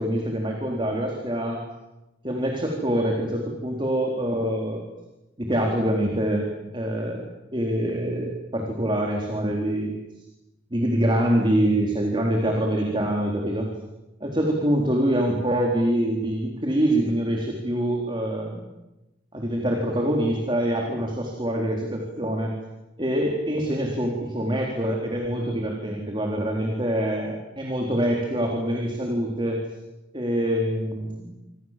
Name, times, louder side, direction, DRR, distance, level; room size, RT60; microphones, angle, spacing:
voice 1, 0.0-1.6 2.2-4.8 5.4-6.5 6.7-7.2 7.5-9.9 10.7-13.7 14.2-18.7 19.3-22.5 23.0-29.6 30.1-31.3, right 1 dB, 25° right, 1 dB, 4.1 m, -25 dB
27.5 x 26.5 x 7.7 m, 0.99 s
head